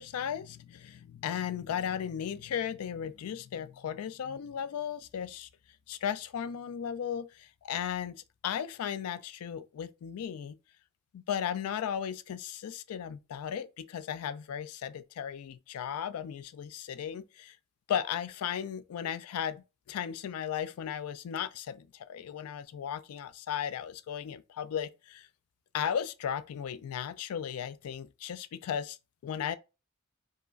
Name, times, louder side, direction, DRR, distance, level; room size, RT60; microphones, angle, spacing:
voice 1, 0.0-5.5 5.9-10.6 11.1-17.6 17.9-25.3 25.7-29.0 29.2-29.6, left 8 dB, 90° left, 0.3 m, -36 dB
4.6 x 2.0 x 2.4 m
head